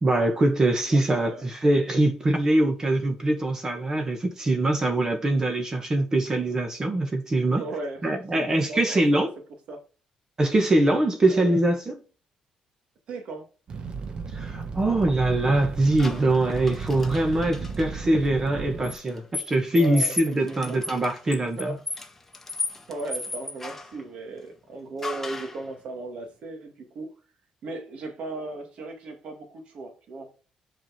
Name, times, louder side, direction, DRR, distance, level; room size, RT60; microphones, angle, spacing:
voice 1, 0.0-7.6 8.0-9.3 10.4-12.0 14.3-21.7, right 2 dB, 25° right, 1.8 m, -23 dB
voice 2, 0.9-1.4 7.4-9.3 9.7-9.8 11.3-11.6 13.1-13.5 16.1-16.2 19.7-20.1 20.5-20.8 21.6-21.8 22.9-27.1 27.6-30.5, right 2 dB, 65° right, 2.5 m, -37 dB
Fire, 13.7-19.0, right 5 dB, 45° right, 1.4 m, -35 dB
sound 1, 16.0-17.9 18.8-24.0 25.0-25.6, left 3 dB, 15° left, 1.4 m, -35 dB
7.3 x 5.1 x 5.1 m
cardioid pair, 110°, 2 cm